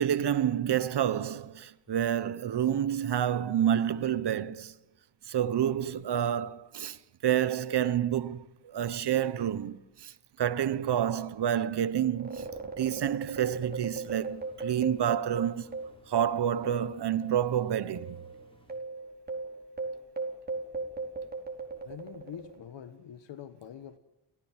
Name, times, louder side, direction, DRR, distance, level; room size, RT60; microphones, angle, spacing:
voice 1, 0.0-4.7 5.3-12.5 12.8-15.8 16.1-18.1, right 10 dB, 60° right, 1.3 m, -29 dB
sound 1, 12.1-16.9 17.2-17.3 17.9-22.7, right 3 dB, 20° right, 4.6 m, -38 dB
Engine, 13.6-18.8, right 1 dB, 10° left, 6.3 m, -60 dB
voice 2, 21.7-24.0, left 9 dB, 70° left, 1.5 m, -45 dB
28.5 x 16.0 x 7.5 m
cardioid pair, 115°, 45 cm